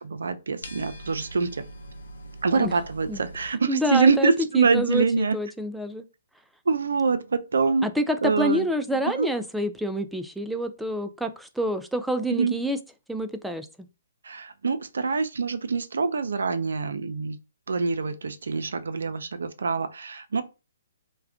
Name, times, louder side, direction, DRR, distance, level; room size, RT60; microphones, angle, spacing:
voice 1, 0.0-1.7 2.4-5.4 6.7-7.9 8.2-8.7 9.1-9.3 12.3-12.5 14.2-17.4 17.7-20.4, right 4 dB, 75° right, 0.5 m, -25 dB
sound 1, 0.6-3.5, right 1 dB, 80° left, 0.6 m, -42 dB
voice 2, 3.7-6.0 7.8-12.8 13.1-13.7, equal, ahead, 0.3 m, -27 dB
2.3 x 2.2 x 3.6 m
hypercardioid pair, 140°, 0 cm